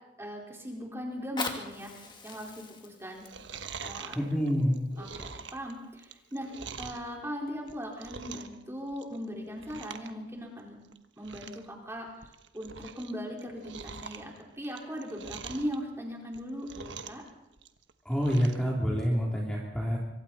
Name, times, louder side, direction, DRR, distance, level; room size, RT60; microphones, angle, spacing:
voice 1, 0.2-3.3 3.8-4.2 5.0-6.5 6.8-10.8 11.2-12.1 12.5-17.2, equal, 15° right, -1 dB, 4.7 m, -39 dB
Fire, 1.1-6.1 6.7-6.8, left 4 dB, 25° left, 2.2 m, -42 dB
Chewing mastication, 3.1-7.1 7.6-8.6 8.9-9.2 9.6-10.1 10.4-10.5 10.9-11.0 11.2-11.7 12.1-13.1 13.4-15.8 16.2-17.3 17.6-18.6 19.0-19.1, right 5 dB, 80° right, 1.3 m, -44 dB
voice 2, 4.1-4.8 18.0-20.0, equal, 5° left, -4 dB, 3.2 m, -27 dB
25.5 x 24.5 x 4.3 m, 0.92 s
head